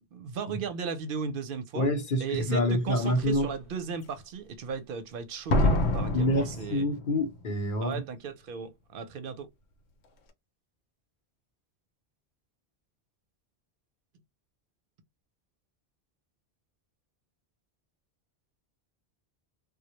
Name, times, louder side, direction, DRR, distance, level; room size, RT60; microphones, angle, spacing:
voice 1, 0.1-1.9 2.2-6.8 7.8-9.5, right 5 dB, 65° right, 0.7 m, -36 dB
voice 2, 1.7-3.5 6.1-8.0, left 1 dB, 55° left, 0.9 m, -27 dB
Slam, 2.3-2.4 3.0-3.4 5.5-7.4 7.6-7.7, left 1 dB, 90° left, 0.9 m, -27 dB
2.1 x 2.1 x 2.8 m
omnidirectional pair, 1.1 m